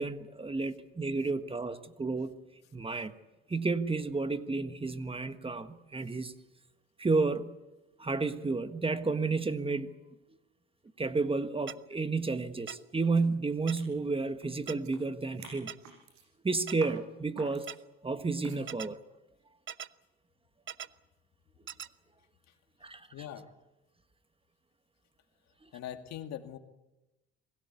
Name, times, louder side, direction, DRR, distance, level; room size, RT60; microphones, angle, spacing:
voice 1, 0.0-2.3 2.7-3.1 3.5-6.3 7.0-7.6 8.0-9.9 11.0-15.7 16.4-17.7 18.0-19.0 22.8-23.1, right 3 dB, 20° right, 11 dB, 1.5 m, -31 dB
sound 1, 11.7-11.8 12.7-12.8 13.7-13.8 14.7-14.8 15.7-15.8 16.7-16.8 17.7-17.8 18.7-18.9 19.7-19.9 20.7-20.9 21.7-21.9, right 8 dB, 40° right, 0.9 m, -40 dB
sound 2, 13.2-13.3 13.6-15.0 15.3-16.3 16.7-17.0 17.4-17.7 18.4-18.7, right 5 dB, 65° right, 7.3 m, -50 dB
voice 2, 23.1-23.5 25.7-26.6, left 10 dB, 60° left, 7 dB, 2.3 m, -41 dB
26.5 x 17.0 x 8.4 m, 1.0 s
supercardioid pair, 80°, 30 cm